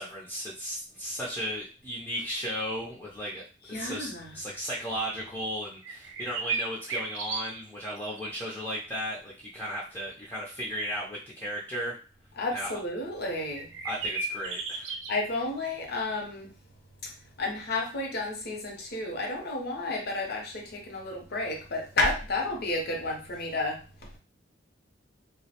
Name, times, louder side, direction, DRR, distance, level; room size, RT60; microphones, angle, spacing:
voice 1, 0.0-12.0 12.5-12.7 13.8-14.9, equal, 10° left, -5 dB, 0.4 m, -35 dB
voice 2, 3.7-4.4 12.4-13.7 15.1-16.5 17.4-23.8, left 2 dB, 55° left, 1 dB, 0.7 m, -31 dB
sound 1, 5.8-7.9 8.2-8.3 13.6-15.2, right 4 dB, 70° right, 0.5 m, -33 dB
2.3 x 2.0 x 2.8 m, 0.34 s
head